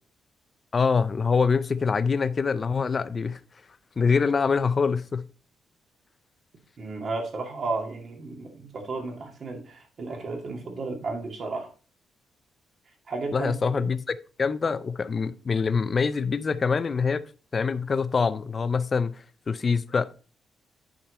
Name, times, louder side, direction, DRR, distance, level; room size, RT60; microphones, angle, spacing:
voice 1, 0.7-3.4 4.0-5.2 13.3-17.2 17.5-20.0, left 5 dB, 35° left, 0.6 m, -25 dB
voice 2, 6.8-11.7 13.1-13.9, right 3 dB, 50° right, 2.3 m, -33 dB
8.7 x 5.3 x 4.1 m
cardioid pair, 125°, 0 cm